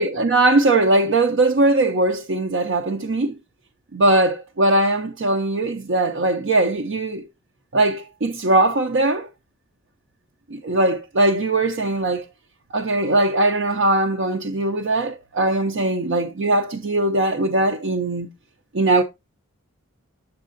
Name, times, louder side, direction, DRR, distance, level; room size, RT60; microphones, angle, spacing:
voice 1, 0.0-3.4 3.9-7.3 7.7-9.3 10.5-12.3 12.7-18.3 18.7-19.0, right 2 dB, 55° right, 0.5 m, -20 dB
7.7 x 6.4 x 2.5 m
head